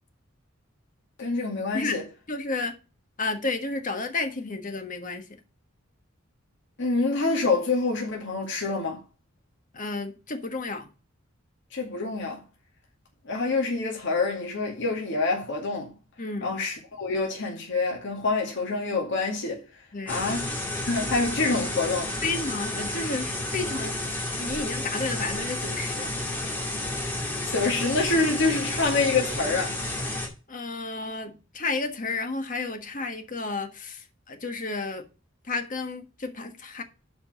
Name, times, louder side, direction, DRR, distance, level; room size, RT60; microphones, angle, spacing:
voice 1, 1.2-2.0 6.8-9.0 11.7-12.4 13.3-15.9 16.4-19.6 20.1-20.5 20.8-22.1 27.5-29.7, left 3 dB, 65° left, 2.2 m, -26 dB
voice 2, 2.3-2.8 3.2-5.3 9.7-10.9 16.2-16.5 19.9-20.3 22.2-23.9 24.4-26.1 30.5-35.0 35.4-36.8, left 3 dB, 40° left, 1.5 m, -32 dB
sound 1, 20.1-30.3, left 1 dB, 10° left, 2.4 m, -31 dB
7.3 x 5.1 x 6.4 m
head